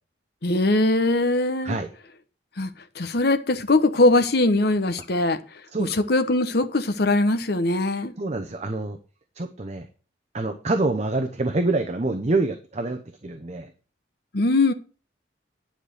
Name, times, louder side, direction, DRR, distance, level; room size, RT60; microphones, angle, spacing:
voice 1, 0.4-1.8 2.6-5.4 5.8-8.1 14.3-14.7, left 2 dB, 55° left, 1.0 m, -21 dB
voice 2, 8.2-9.0 9.3-9.9 10.3-13.7, right 2 dB, 35° right, 0.8 m, -26 dB
10.0 x 5.0 x 6.4 m
head